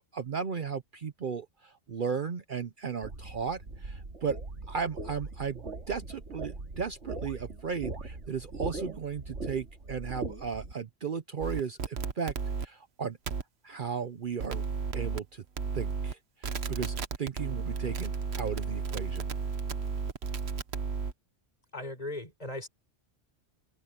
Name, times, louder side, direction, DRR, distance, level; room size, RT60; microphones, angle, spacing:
voice 1, 0.0-4.4 4.7-12.3 12.6-13.2 13.6-14.7 14.9-15.4 15.7-19.3, right 6 dB, 50° right, 0.9 m, -35 dB
sound 1, 3.0-10.7, right 3 dB, 85° right, 2.5 m, -40 dB
sound 2, 11.4-12.7 13.3-13.4 14.4-15.2 15.6-16.1 16.4-21.1, right 5 dB, 65° right, 1.3 m, -33 dB
voice 2, 21.7-22.7, left 2 dB, 35° left, 4.8 m, -38 dB
omnidirectional pair, 1.2 m